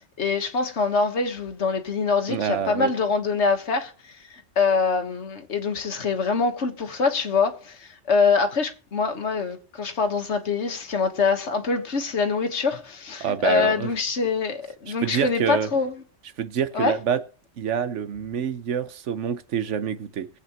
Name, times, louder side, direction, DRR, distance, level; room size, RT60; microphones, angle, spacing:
voice 1, 0.2-3.9 4.3-15.9 16.7-16.9, left 4 dB, 70° left, 1.7 m, -24 dB
voice 2, 2.3-2.9 13.2-13.9 14.9-15.7 16.4-17.2 17.6-20.3, right 8 dB, 90° right, 1.2 m, -26 dB
21.0 x 8.2 x 3.0 m
omnidirectional pair, 1.2 m